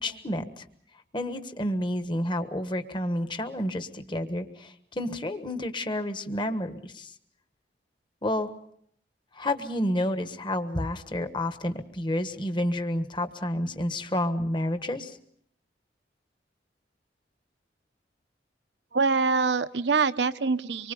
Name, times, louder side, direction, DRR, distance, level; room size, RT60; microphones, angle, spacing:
voice 1, 0.0-0.6 1.1-7.1 8.2-8.5 9.3-15.2, left 1 dB, 25° left, 9 dB, 1.4 m, -30 dB
voice 2, 18.9-20.9, right 4 dB, 75° right, 11 dB, 0.9 m, -24 dB
25.5 x 23.5 x 5.3 m, 0.64 s
head